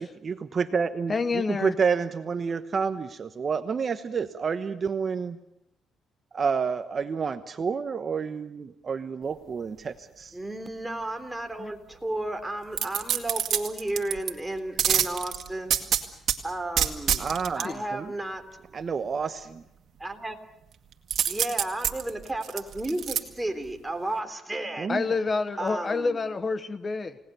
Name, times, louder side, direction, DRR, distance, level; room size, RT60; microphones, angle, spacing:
voice 1, 0.0-5.4 6.3-10.3 17.2-18.1 18.7-19.6 24.8-25.2, right 5 dB, 45° right, 10 dB, 1.1 m, -29 dB
voice 2, 1.1-1.7 11.6-11.7 17.6-17.8 24.9-27.2, left 4 dB, 35° left, 13 dB, 1.1 m, -28 dB
voice 3, 10.3-15.8 16.4-17.3 17.5-18.4 20.0-20.4 21.3-24.9 25.6-26.2, right 1 dB, 10° right, 6 dB, 3.3 m, -33 dB
sound 1, 12.7-14.3 14.8-16.4 16.8-17.7 21.1-23.2 23.7-23.8, right 9 dB, 65° right, 2.1 m, -26 dB
29.5 x 18.5 x 6.9 m, 0.81 s
cardioid pair, 90°, 0 cm